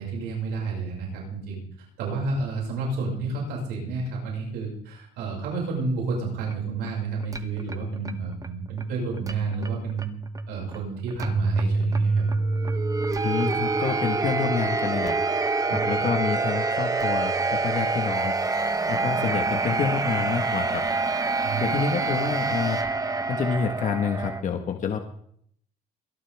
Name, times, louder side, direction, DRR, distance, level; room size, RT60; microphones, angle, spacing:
voice 1, 0.0-10.1 10.5-12.3 15.7-16.0 19.7-19.8 21.4-21.7, right 4 dB, 90° right, -2 dB, 5.9 m, -31 dB
sound 1, 6.3-24.4, right 3 dB, 20° right, 1.1 m, -27 dB
voice 2, 13.2-15.2 15.7-18.3 18.9-20.8 21.6-22.8 23.3-25.0, left 6 dB, 50° left, 5 dB, 1.5 m, -28 dB
22.0 x 11.5 x 3.6 m, 0.65 s
cardioid pair, 110°, 17 cm